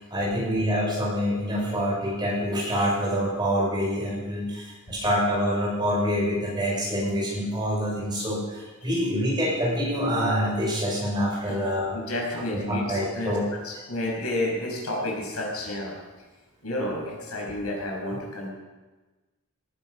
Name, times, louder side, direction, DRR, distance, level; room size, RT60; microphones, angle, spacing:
voice 1, 0.0-12.0 12.3-13.5, equal, 20° right, -4 dB, 6.4 m, -26 dB
voice 2, 11.9-13.4 13.6-15.9 16.6-18.5, left 1 dB, 85° left, -2 dB, 6.1 m, -30 dB
18.5 x 12.0 x 5.6 m, 1.2 s
head